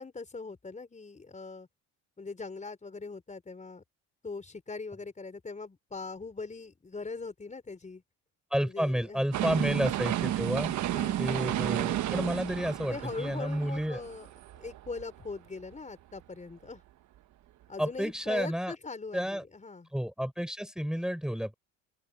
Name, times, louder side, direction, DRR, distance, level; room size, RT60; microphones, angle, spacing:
voice 1, 0.0-1.7 2.2-3.8 4.2-8.0 8.6-10.0 10.9-11.3 12.9-14.3 14.6-16.8 17.7-19.9, left 4 dB, 20° left, 5.1 m, -41 dB
voice 2, 8.5-10.7 11.2-14.0 17.8-18.7 19.1-19.4 19.9-21.5, equal, ahead, 4.2 m, -31 dB
sound 1, 9.3-15.3 15.7-15.8, right 13 dB, 60° right, 1.2 m, -32 dB
open air
supercardioid pair, 95°, 33 cm